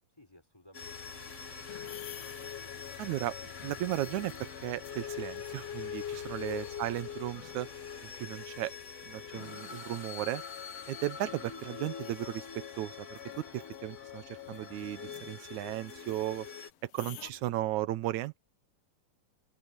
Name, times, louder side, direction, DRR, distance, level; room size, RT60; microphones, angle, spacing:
voice 1, 0.2-2.2 17.2-17.5, left 1 dB, 10° left, 4.6 m, -61 dB
sound 1, 0.7-16.7, left 6 dB, 25° left, 2.2 m, -44 dB
sound 2, 0.8-16.5, left 12 dB, 65° left, 1.5 m, -56 dB
sound 3, 1.0-17.3, left 17 dB, 90° left, 1.4 m, -51 dB
voice 2, 3.0-7.7 8.2-8.7 9.1-10.4 10.9-12.4 12.8-13.2 13.5-16.5 16.8-18.4, right 15 dB, 75° right, 2.1 m, -35 dB
omnidirectional pair, 3.6 m